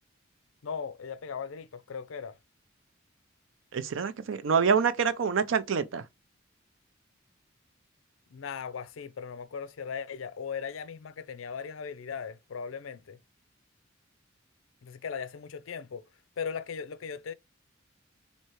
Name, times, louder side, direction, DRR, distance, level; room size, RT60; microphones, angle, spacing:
voice 1, 0.6-2.4 8.3-13.2 14.8-16.1 16.4-17.3, left 6 dB, 80° left, 0.4 m, -38 dB
voice 2, 3.7-6.0, right 6 dB, 70° right, 0.5 m, -26 dB
4.4 x 2.8 x 3.0 m
head